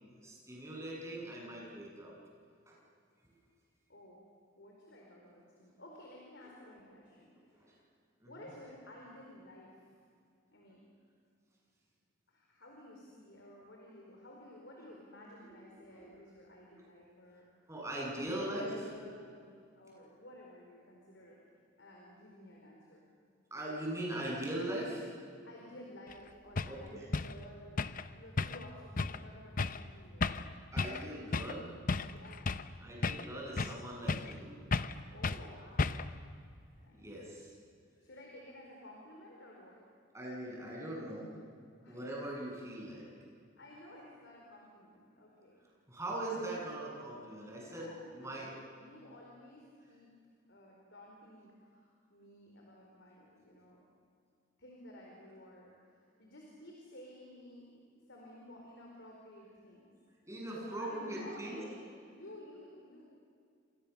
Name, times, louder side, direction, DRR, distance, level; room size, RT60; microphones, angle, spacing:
voice 1, 0.2-2.1 2.7-2.8 7.5-7.7 8.2-8.5 15.4-16.1 17.7-18.8 23.5-25.2 26.6-27.1 30.7-31.7 32.8-34.6 36.9-37.6 40.1-41.3 41.8-43.1 45.9-48.5 60.2-61.6, right 1 dB, 15° right, -3 dB, 8.0 m, -41 dB
voice 2, 3.9-4.2 4.5-7.8 8.3-9.8 10.5-10.9 12.3-17.7 18.1-19.4 19.8-21.4 21.8-23.0 25.4-27.8 28.1-30.6 32.1-32.6 35.1-36.1 36.8-37.1 38.0-39.8 41.8-42.0 43.6-45.6 47.5-48.4 48.8-50.1 50.5-53.8 54.6-59.9 60.5-61.8 62.1-63.1, left 1 dB, 65° left, -1 dB, 4.7 m, -54 dB
sound 1, 26.1-26.2 26.6-26.8 27.1-27.4 27.8-28.1 28.4-28.7 29.0-29.2 29.6-29.8 30.2-30.5 30.8-31.0 31.3-31.6 31.9-32.7 33.0-33.8 34.1-34.4 34.7-35.0 35.2-35.4 35.8-36.2, left 3 dB, 45° left, 0.8 m, -33 dB
29.5 x 27.0 x 7.2 m, 2.3 s
head